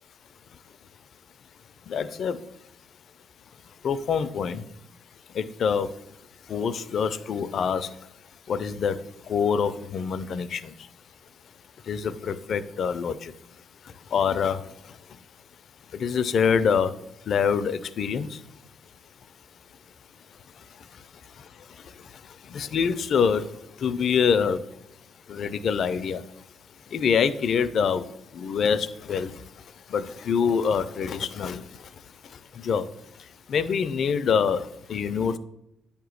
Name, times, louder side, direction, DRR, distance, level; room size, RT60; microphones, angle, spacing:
voice 1, 1.9-2.4 3.8-4.6 5.4-5.9 6.5-7.9 8.5-9.0 9.3-10.6 11.9-13.3 14.1-14.6 16.0-16.9 17.3-18.3 22.5-23.4 23.8-24.6 25.3-26.2 26.9-28.0 28.3-29.3 29.9-31.6 32.6-32.9 33.5-34.6 34.9-35.4, left 6 dB, 60° left, 13 dB, 0.4 m, -25 dB
8.5 x 2.9 x 6.3 m, 0.83 s
cardioid pair, 90°, 0 cm